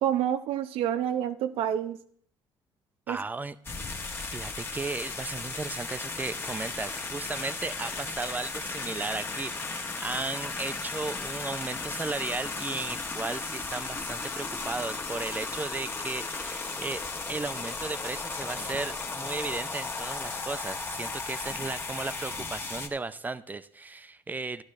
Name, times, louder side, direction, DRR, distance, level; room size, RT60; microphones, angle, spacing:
voice 1, 0.0-2.0 3.1-3.2, right 10 dB, 80° right, 11 dB, 0.8 m, -28 dB
voice 2, 3.1-3.6 4.3-17.0 17.3-24.6, right 3 dB, 20° right, 14 dB, 0.5 m, -35 dB
sound 1, 3.6-22.9, left 3 dB, 25° left, 1.1 m, -35 dB
12.0 x 11.5 x 3.2 m, 0.62 s
cardioid pair, 100°, 9 cm